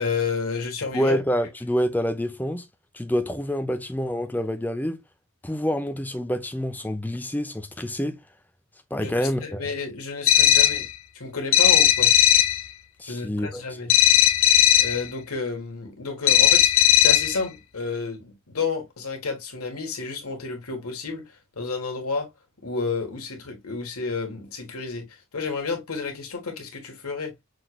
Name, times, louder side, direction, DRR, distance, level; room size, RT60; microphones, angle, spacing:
voice 1, 0.0-1.2 9.0-10.9 11.1-12.1 13.1-13.9 14.8-22.3 22.6-27.3, left 4 dB, 80° left, 1.6 m, -31 dB
voice 2, 0.9-2.7 2.9-5.0 5.4-8.2 8.9-9.7 13.0-13.6, equal, 10° left, 0.5 m, -27 dB
sound 1, 10.3-10.9 11.5-12.6 13.9-15.0 16.3-17.4, left 12 dB, 60° left, 0.5 m, -17 dB
5.9 x 3.2 x 2.3 m
head